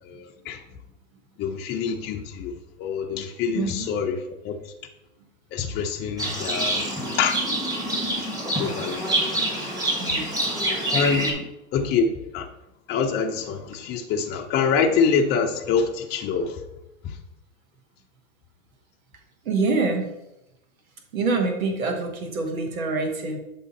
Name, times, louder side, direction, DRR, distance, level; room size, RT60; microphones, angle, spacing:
voice 1, 0.0-0.6 1.4-4.7 5.5-6.8 7.2-7.5 8.0-8.3 8.6-9.0 9.5-9.6 10.9-11.3 11.7-12.1 12.3-12.5 12.9-16.6 17.0-17.2, left 6 dB, 25° left, 1 dB, 0.6 m, -25 dB
voice 2, 3.5-3.9 10.0-10.3 11.2-11.4 19.4-20.1 21.1-23.4, right 3 dB, 85° right, 3 dB, 1.4 m, -26 dB
Livestock farm animals working animals, 6.2-11.3, right 1 dB, 10° right, 1.5 m, -26 dB
8.3 x 3.6 x 4.1 m, 0.91 s
hypercardioid pair, 120°, 40 cm